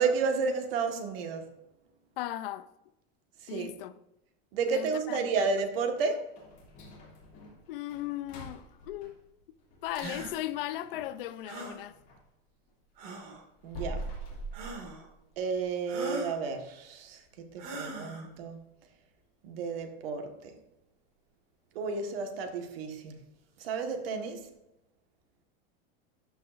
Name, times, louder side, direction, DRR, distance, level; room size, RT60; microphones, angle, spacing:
voice 1, 0.0-1.5 3.4-3.7 4.5-6.2 13.6-14.1 15.4-18.6 19.4-20.3 21.7-23.2 23.6-24.5, right 5 dB, 70° right, 1.5 m, -31 dB
voice 2, 2.2-2.7 3.5-3.9 4.7-5.5 7.7-9.2 9.8-12.0, left 14 dB, 65° left, 0.6 m, -37 dB
sound 1, 6.3-12.3 12.7-15.5 15.9-16.0 16.5-16.6 17.1-17.4 17.7-17.8 18.4-18.5, right 1 dB, 25° left, 2.5 m, -45 dB
sound 2, 10.0-10.3 11.5-11.8 13.0-13.4 14.5-15.1 15.9-16.4 17.6-18.3, right 2 dB, 55° right, 2.2 m, -39 dB
12.5 x 5.7 x 2.5 m
supercardioid pair, 180°, 30 cm